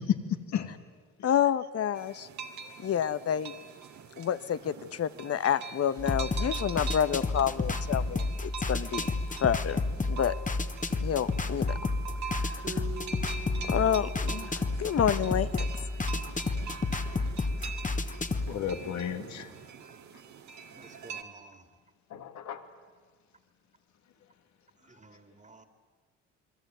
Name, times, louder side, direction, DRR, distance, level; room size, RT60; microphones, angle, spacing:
voice 1, 1.2-2.3 2.8-3.5 4.2-9.1 9.4-10.3 11.0-11.8 12.3-12.8 13.7-15.7, left 9 dB, 55° left, 14 dB, 1.2 m, -29 dB
sound 1, 1.9-21.2, right 6 dB, 70° right, 2.6 m, -44 dB
sound 2, 6.0-18.5, left 3 dB, 25° left, 1.9 m, -31 dB
Bass guitar, 12.6-17.3 17.6-18.9, right 3 dB, 40° right, 2.7 m, -48 dB
voice 2, 16.9-17.2 18.5-19.5 22.1-22.7, left 9 dB, 70° left, 8 dB, 2.4 m, -35 dB
voice 3, 20.8-21.6 25.0-25.7, right 3 dB, 25° right, 9 dB, 2.6 m, -53 dB
28.5 x 21.0 x 9.3 m, 1.5 s
supercardioid pair, 70°, 30 cm